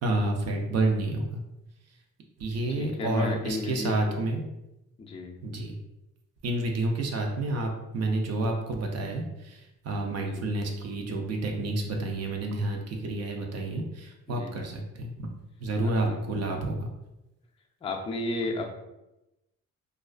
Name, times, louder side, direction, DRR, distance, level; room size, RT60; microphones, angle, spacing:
voice 1, 0.0-1.4 2.4-4.4 5.4-5.8 6.4-15.3 15.6-16.9, right 2 dB, 60° right, 2 dB, 0.5 m, -29 dB
voice 2, 2.8-4.2 5.0-5.4 10.2-10.4 14.3-14.5 15.8-16.2 17.8-18.7, left 2 dB, 20° left, 2 dB, 0.3 m, -33 dB
2.3 x 2.3 x 2.3 m, 0.93 s
cardioid pair, 90°, 30 cm